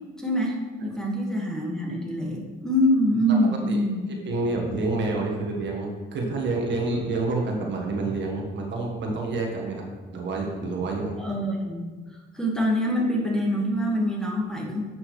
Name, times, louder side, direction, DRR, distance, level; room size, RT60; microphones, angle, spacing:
voice 1, 0.2-4.1 11.2-12.0 12.3-14.8, equal, 5° left, -2 dB, 1.8 m, -25 dB
voice 2, 3.4-3.8 4.2-11.1, right 3 dB, 65° right, 0 dB, 1.5 m, -28 dB
10.0 x 6.0 x 3.2 m, 1.3 s
cardioid pair, 90°, 20 cm